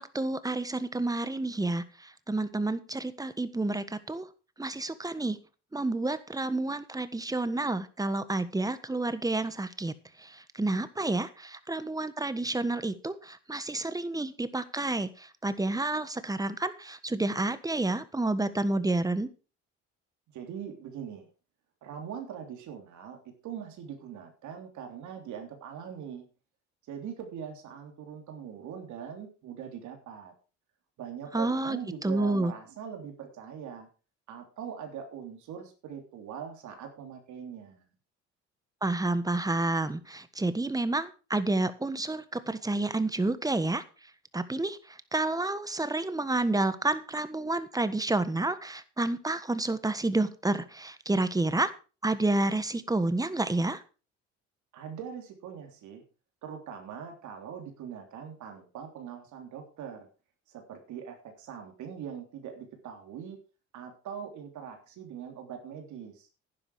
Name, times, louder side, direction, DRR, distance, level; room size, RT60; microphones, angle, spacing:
voice 1, 0.0-4.3 4.6-5.4 5.7-9.9 10.2-19.3 31.3-31.8 32.0-32.5 38.8-43.8 44.3-51.7 52.0-53.8, right 2 dB, 10° right, 13 dB, 1.4 m, -29 dB
voice 2, 20.3-21.3 21.8-26.2 26.9-30.3 31.0-33.9 34.3-37.9 54.7-56.0 56.4-60.1 60.5-63.4 63.7-66.3, right 8 dB, 65° right, 4 dB, 3.3 m, -42 dB
10.5 x 10.5 x 4.9 m, 0.34 s
supercardioid pair, 80°, 32 cm